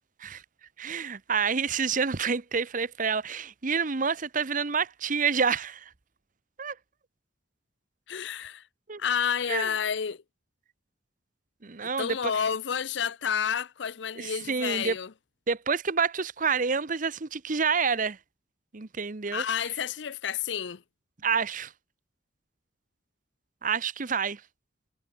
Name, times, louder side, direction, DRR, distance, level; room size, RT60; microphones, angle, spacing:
voice 1, 0.8-5.9 6.6-6.8 8.9-9.0 9.5-9.7 11.6-12.3 14.2-15.0 15.5-18.2 18.7-19.4 21.2-21.7 23.6-24.4, right 5 dB, 45° right, 0.9 m, -28 dB
voice 2, 8.1-8.6 9.0-10.2 12.0-15.1 19.3-20.8, left 7 dB, 70° left, 0.6 m, -30 dB
head